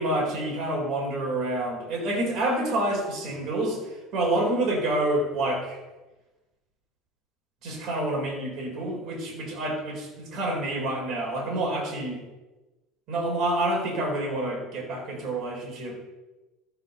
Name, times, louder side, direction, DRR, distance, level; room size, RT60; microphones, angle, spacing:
voice 1, 0.0-5.8 7.6-12.2 13.1-16.0, right 1 dB, 50° right, -1 dB, 4.2 m, -28 dB
14.0 x 5.9 x 6.7 m, 1.1 s
cardioid pair, 135°, 0 cm